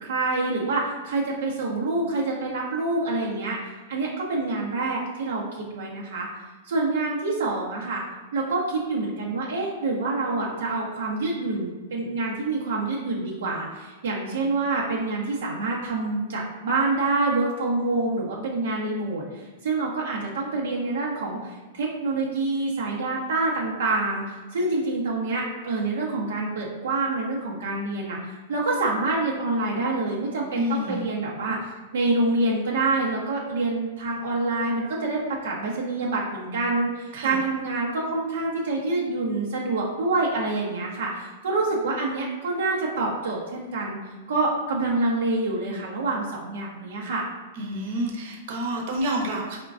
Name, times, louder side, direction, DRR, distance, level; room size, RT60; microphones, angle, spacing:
voice 1, 0.0-6.3 6.7-8.0 8.3-44.0 44.3-47.3, right 2 dB, 80° right, -3 dB, 0.8 m, -27 dB
voice 2, 30.5-31.0 37.1-37.4 47.5-49.6, equal, 55° right, -1 dB, 1.0 m, -29 dB
4.4 x 3.7 x 2.4 m, 1.3 s
supercardioid pair, 155°, 0 cm